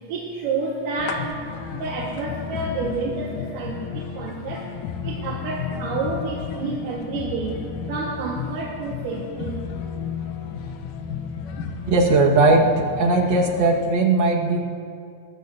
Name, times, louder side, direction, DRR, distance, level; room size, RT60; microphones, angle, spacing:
voice 1, 0.0-4.7 5.0-9.6 14.4-14.5, right 3 dB, 85° right, -3 dB, 3.0 m, -29 dB
sound 1, 1.0-13.8, left 7 dB, 75° left, 2.2 m, -33 dB
voice 2, 11.9-12.7 13.0-14.6, right 3 dB, 45° right, -1 dB, 1.6 m, -18 dB
20.5 x 20.0 x 2.6 m, 2.4 s
omnidirectional pair, 3.8 m